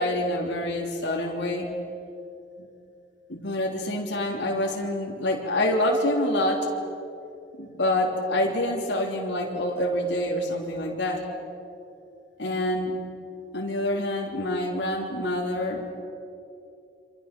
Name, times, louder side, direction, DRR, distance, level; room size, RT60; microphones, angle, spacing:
voice 1, 0.0-1.7 2.6-2.7 3.3-6.7 7.6-11.3 12.4-13.0 13.5-16.0, left 1 dB, 85° left, -1 dB, 3.3 m, -26 dB
27.0 x 26.5 x 6.1 m, 2.7 s
head